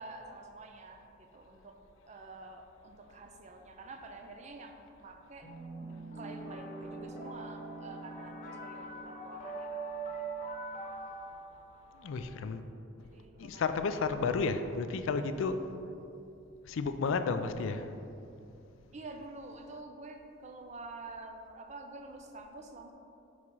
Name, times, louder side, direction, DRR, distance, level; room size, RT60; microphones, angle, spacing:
voice 1, 0.0-1.8 2.0-5.5 6.1-9.9 10.3-10.5 13.0-13.8 18.9-22.9, right 2 dB, 35° right, 5 dB, 0.5 m, -48 dB
sound 1, 5.4-12.4, right 3 dB, 40° left, 1.0 m, -42 dB
voice 2, 11.9-12.6 13.4-15.7 16.7-17.9, left 4 dB, 65° left, 9 dB, 0.3 m, -32 dB
4.9 x 4.7 x 5.5 m, 2.7 s
head